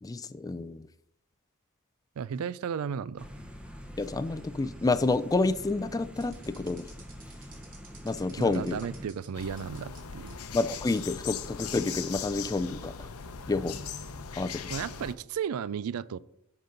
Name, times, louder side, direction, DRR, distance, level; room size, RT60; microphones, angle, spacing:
voice 1, 0.0-0.9 4.0-6.9 8.0-8.8 10.5-13.1 13.5-13.8 14.4-14.5, left 3 dB, 15° left, 14 dB, 0.3 m, -29 dB
voice 2, 2.2-3.3 8.4-10.4 14.7-16.2, right 7 dB, 75° right, 19 dB, 0.4 m, -34 dB
sound 1, 3.2-9.1, equal, 5° right, 0.8 m, -45 dB
sound 2, 6.2-10.0 10.3-11.0 11.4-11.5 12.2-12.4, right 4 dB, 40° right, 2.3 m, -53 dB
sound 3, 9.3-15.1, left 7 dB, 85° left, 0.7 m, -39 dB
9.8 x 4.0 x 5.2 m, 0.76 s
head